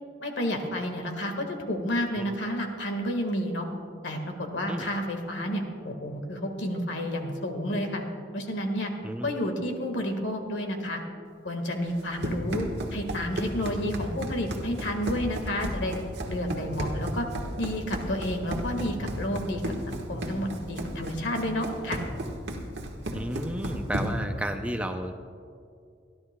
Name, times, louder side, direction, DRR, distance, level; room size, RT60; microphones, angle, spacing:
voice 1, 0.2-3.7 4.0-8.0 8.3-8.9 9.2-11.0 11.4-16.0 16.3-17.3 17.6-19.6 19.9-22.0, equal, 70° left, 4 dB, 1.6 m, -30 dB
voice 2, 9.0-9.5 23.1-25.1, right 1 dB, 5° right, 6 dB, 0.4 m, -32 dB
Run, 11.9-24.3, right 1 dB, 65° right, 1.4 m, -34 dB
26.0 x 11.5 x 2.2 m, 2.4 s
head